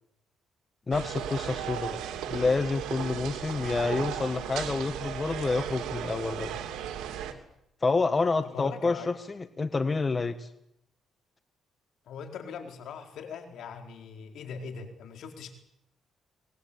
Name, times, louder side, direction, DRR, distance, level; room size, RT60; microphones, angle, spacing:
voice 1, 0.9-2.0 2.3-6.5 7.8-10.5, left 3 dB, 30° left, 10 dB, 1.4 m, -28 dB
sound 1, 0.9-7.3, right 9 dB, 90° right, 2.8 m, -35 dB
voice 2, 8.5-9.1 12.1-15.6, left 6 dB, 75° left, 4 dB, 4.5 m, -41 dB
24.0 x 20.0 x 8.5 m, 0.81 s
cardioid pair, 90°, 0 cm